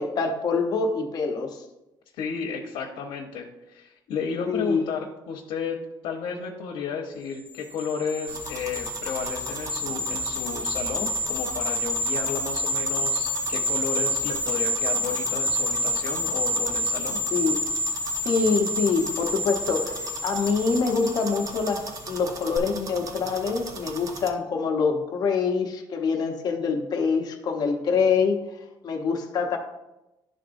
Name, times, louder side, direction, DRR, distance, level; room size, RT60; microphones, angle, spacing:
voice 1, 0.0-1.6 4.5-4.9 17.3-17.6 18.2-28.4 28.8-29.6, left 5 dB, 50° left, 3 dB, 0.9 m, -25 dB
voice 2, 2.1-17.2, left 6 dB, 85° left, 0 dB, 0.8 m, -33 dB
sound 1, 7.5-22.1 22.4-22.6, left 1 dB, 10° left, 0.6 m, -28 dB
sound 2, 8.3-24.3, right 3 dB, 40° right, 0.8 m, -39 dB
11.0 x 3.8 x 2.6 m, 0.96 s
cardioid pair, 155°, 9 cm